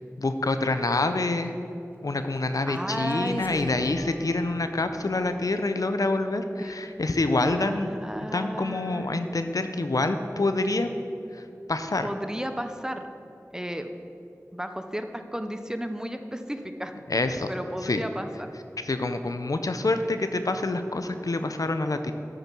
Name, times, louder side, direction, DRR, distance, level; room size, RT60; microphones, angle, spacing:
voice 1, 0.2-1.5 2.0-10.9 11.3-11.4 11.7-12.1 17.1-17.5 17.8-18.0 18.8-22.1, left 2 dB, 80° left, 8 dB, 0.5 m, -27 dB
sound 1, 1.9-7.8, left 1 dB, 30° right, 1.2 m, -50 dB
voice 2, 2.7-3.8 6.6-6.8 7.5-9.1 12.0-13.1 13.5-13.9 14.5-16.9 17.5-18.5, equal, 10° right, 7 dB, 0.6 m, -33 dB
8.6 x 6.6 x 6.1 m, 2.8 s
wide cardioid pair, 45°, 6 cm